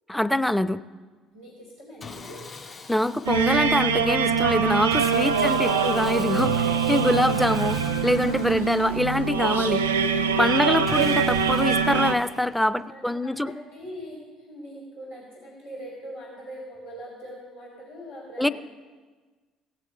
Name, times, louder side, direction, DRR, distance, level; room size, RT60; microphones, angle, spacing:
voice 1, 0.1-0.8 2.9-9.8 10.4-13.5 18.4-18.5, left 1 dB, 5° left, 15 dB, 0.5 m, -24 dB
voice 2, 1.3-2.4 12.9-14.2 14.5-18.5, equal, 90° left, -9 dB, 4.0 m, -42 dB
Sawing, 2.0-4.0 4.9-9.4 10.9-12.7, left 4 dB, 40° left, 2.5 m, -43 dB
sound 1, 3.2-12.1, right 6 dB, 85° right, 0.6 m, -24 dB
17.0 x 7.7 x 4.7 m, 1.4 s
figure-of-eight pair, 55°, 0 cm